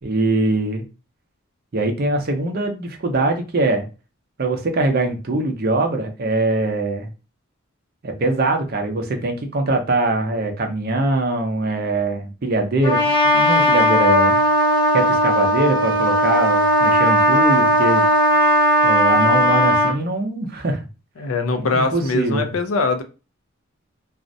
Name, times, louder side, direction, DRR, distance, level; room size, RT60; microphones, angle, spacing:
voice 1, 0.0-0.9 1.7-3.9 4.4-7.1 8.0-14.4 14.9-18.1 18.8-20.8 21.6-22.5, right 2 dB, 45° right, 0.5 m, -22 dB
Trumpet, 12.8-20.0, equal, 25° left, 0.5 m, -17 dB
voice 2, 21.2-23.0, left 3 dB, 85° left, 0.5 m, -22 dB
2.4 x 2.0 x 2.5 m
head